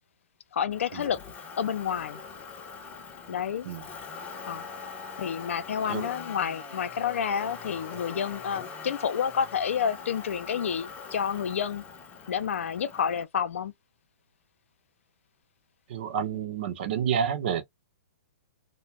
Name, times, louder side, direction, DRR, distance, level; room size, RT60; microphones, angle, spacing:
voice 1, 0.5-1.2 1.6-2.2 3.3-3.7 4.5-4.7 5.2-11.8 12.3-13.7, left 7 dB, 75° left, 0.6 m, -29 dB
Motor vehicle (road), 0.7-13.2, left 5 dB, 20° left, 0.6 m, -42 dB
voice 2, 15.9-17.6, right 8 dB, 50° right, 0.8 m, -29 dB
2.5 x 2.2 x 3.2 m
hypercardioid pair, 150°, 7 cm